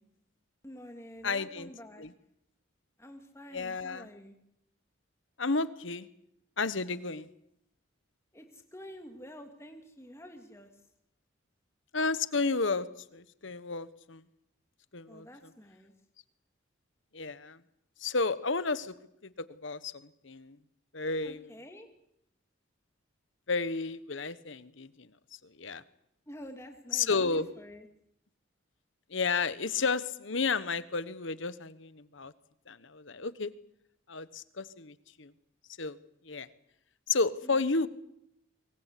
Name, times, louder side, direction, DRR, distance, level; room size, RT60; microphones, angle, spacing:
voice 1, 0.6-2.1 3.0-4.4 8.3-10.7 15.1-15.9 21.2-21.9 26.3-27.9 37.4-37.6, equal, 15° left, 4 dB, 2.8 m, -48 dB
voice 2, 1.2-1.7 2.0-2.1 3.5-4.1 5.4-6.1 6.6-7.3 11.9-14.2 14.9-15.5 17.1-17.6 18.0-18.9 19.2-20.6 20.9-21.5 23.5-25.1 25.4-25.8 26.9-27.5 29.1-32.3 32.7-33.5 34.1-35.3 35.8-36.0 36.2-36.5 37.1-37.9, left 4 dB, 70° left, 15 dB, 1.2 m, -32 dB
24.5 x 20.0 x 8.4 m, 0.77 s
head